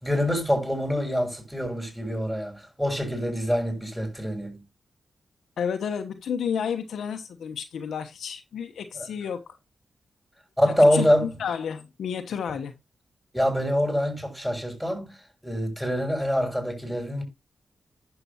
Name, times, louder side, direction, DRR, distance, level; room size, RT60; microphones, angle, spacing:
voice 1, 0.0-4.6 8.9-9.1 10.6-11.3 13.3-15.1 15.4-17.2, equal, 5° right, 6.5 m, -25 dB
voice 2, 5.6-9.4 10.6-12.7, left 7 dB, 80° left, 1.0 m, -31 dB
11.0 x 6.9 x 2.9 m
supercardioid pair, 50°, 0 cm